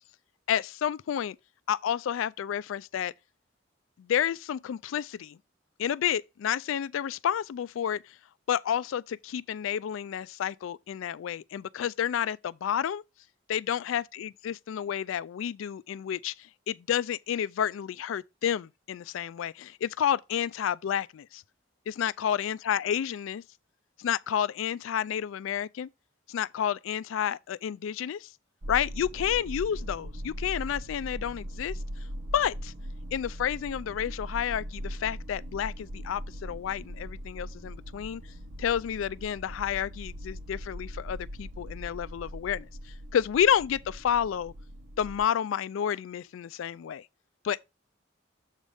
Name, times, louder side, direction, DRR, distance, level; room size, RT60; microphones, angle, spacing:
voice 1, 0.5-1.4 1.7-3.1 4.0-5.4 5.8-8.0 8.5-13.0 13.5-16.3 16.7-21.4 21.9-23.4 24.0-25.9 26.3-28.3 28.7-31.8 32.3-32.7 33.1-38.2 38.6-42.7 43.1-44.5 45.0-47.1 47.4-47.7, left 9 dB, 85° left, 0.3 m, -30 dB
sound 1, 28.6-45.3, equal, 70° right, 0.9 m, -40 dB
7.3 x 3.4 x 5.4 m
head